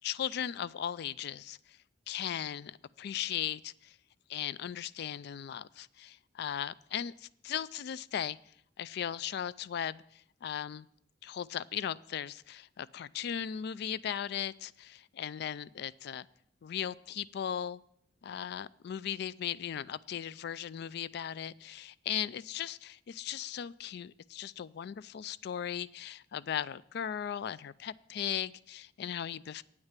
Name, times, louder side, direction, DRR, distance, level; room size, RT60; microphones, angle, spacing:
voice 1, 0.0-1.8 2.1-4.0 4.3-8.4 8.8-10.9 11.2-16.3 16.6-17.8 18.2-29.6, left 9 dB, 55° left, 19 dB, 0.3 m, -37 dB
9.1 x 6.5 x 7.3 m, 0.71 s
head